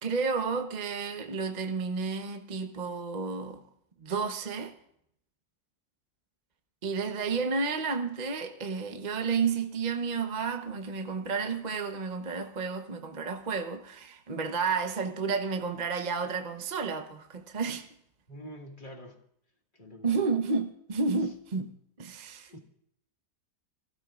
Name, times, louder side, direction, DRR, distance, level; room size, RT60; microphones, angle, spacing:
voice 1, 0.0-3.6 4.0-4.7 6.8-17.9 20.0-21.7 22.0-22.5, right 4 dB, 35° right, 0.8 m, -31 dB
voice 2, 18.3-19.2 19.7-20.2 21.2-21.3 22.4-22.6, equal, 30° left, 1.8 m, -46 dB
25.5 x 15.5 x 2.4 m
omnidirectional pair, 1.7 m